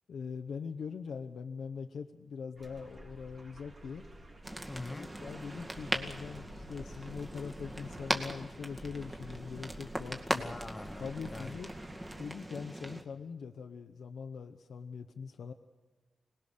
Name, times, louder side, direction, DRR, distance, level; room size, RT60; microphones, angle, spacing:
voice 1, 0.1-4.1 4.9-10.5 11.0-11.7 12.2-15.5, left 6 dB, 85° left, 0.8 m, -42 dB
sound 1, 2.6-12.2, right 1 dB, 50° right, 3.5 m, -50 dB
sound 2, 4.4-13.0, right 1 dB, 20° right, 2.2 m, -39 dB
voice 2, 4.7-5.1 10.3-11.6, left 2 dB, 30° left, 0.8 m, -43 dB
26.0 x 19.0 x 6.6 m
cardioid pair, 75°, 0 cm